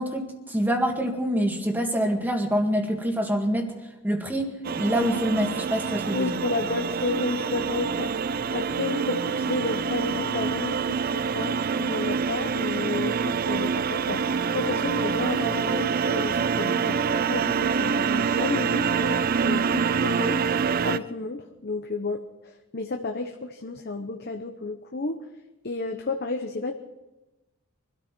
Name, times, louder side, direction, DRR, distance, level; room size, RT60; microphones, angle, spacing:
voice 1, 0.0-3.7 4.0-6.3, equal, 10° right, 3 dB, 2.0 m, -26 dB
sound 1, 4.6-21.0, right 6 dB, 45° right, 0.5 m, -26 dB
voice 2, 6.1-8.1 8.5-17.0 17.3-20.4 20.8-25.2 25.6-26.7, left 3 dB, 50° left, 5 dB, 1.0 m, -31 dB
23.5 x 13.0 x 4.5 m, 1.0 s
head